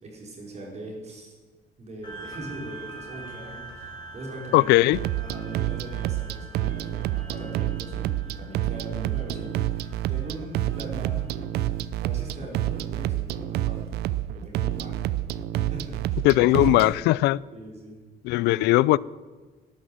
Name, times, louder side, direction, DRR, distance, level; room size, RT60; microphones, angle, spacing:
voice 1, 0.0-1.3 1.8-4.7 5.2-11.7 12.0-14.0 14.3-15.0 15.5-17.0 17.5-18.0, right 1 dB, 40° right, 4.9 m, -41 dB
sound 1, 2.0-12.9, right 3 dB, 25° left, 5.2 m, -45 dB
voice 2, 4.5-5.0 16.2-17.4 18.2-19.0, left 18 dB, 85° left, 0.4 m, -19 dB
sound 2, 4.9-16.9, right 13 dB, 80° right, 0.6 m, -28 dB
12.5 x 11.0 x 7.7 m
cardioid pair, 110°, 17 cm